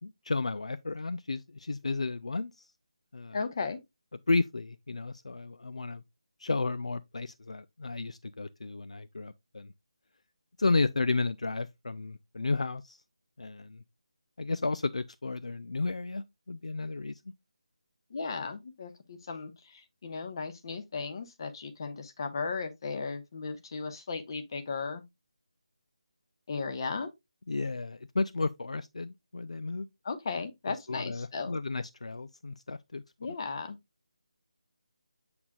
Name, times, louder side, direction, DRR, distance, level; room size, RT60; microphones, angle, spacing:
voice 1, 0.0-2.7 3.1-3.4 4.3-6.0 6.4-9.7 10.6-13.0 13.4-13.8 14.4-17.2 27.5-29.9 30.7-33.0, left 3 dB, 70° left, 0.4 m, -33 dB
voice 2, 3.3-3.8 18.1-25.0 26.5-27.1 30.0-31.6 33.2-33.8, left 4 dB, 40° left, 1.1 m, -36 dB
7.7 x 5.9 x 2.3 m
figure-of-eight pair, 160°, 4 cm